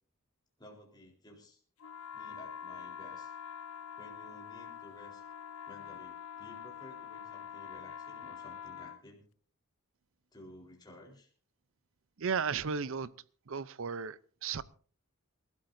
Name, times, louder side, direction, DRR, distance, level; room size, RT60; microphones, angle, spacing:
voice 1, 0.6-1.6 2.1-3.3 4.0-5.2 5.7-9.2 10.3-11.3, left 1 dB, 20° left, -2 dB, 4.0 m, -54 dB
sound 1, 1.8-9.0, left 8 dB, 70° left, 0.6 m, -45 dB
voice 2, 12.2-13.1 13.5-14.6, right 6 dB, 60° right, 18 dB, 0.6 m, -34 dB
28.0 x 13.0 x 2.7 m, 0.43 s
head